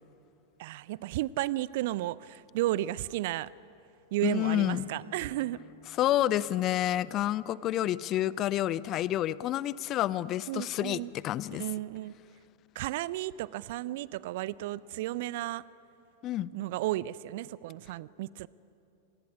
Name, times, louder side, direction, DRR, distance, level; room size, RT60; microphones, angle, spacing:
voice 1, 0.6-3.5 4.1-5.6 10.5-11.1 11.5-12.1 12.7-15.6 16.5-18.5, right 15 dB, 50° right, 21 dB, 0.5 m, -33 dB
voice 2, 4.2-4.9 6.0-11.6 16.2-16.5, left 13 dB, 35° left, 20 dB, 0.6 m, -29 dB
Acoustic guitar / Strum, 4.4-7.5, left 1 dB, 90° left, 3.0 m, -52 dB
26.0 x 20.0 x 9.8 m, 2.7 s
figure-of-eight pair, 90°, 0 cm